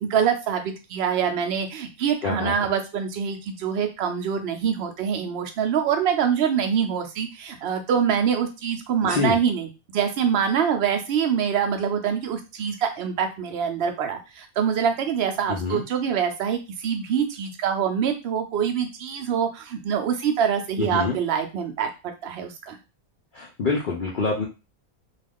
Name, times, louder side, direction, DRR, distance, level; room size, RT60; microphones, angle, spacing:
voice 1, 0.0-22.8, right 7 dB, 60° right, 5 dB, 0.6 m, -25 dB
voice 2, 2.2-2.5 9.0-9.4 15.5-15.8 20.8-21.2 23.3-24.5, left 4 dB, 75° left, -2 dB, 0.4 m, -26 dB
2.4 x 2.4 x 3.5 m, 0.28 s
omnidirectional pair, 1.5 m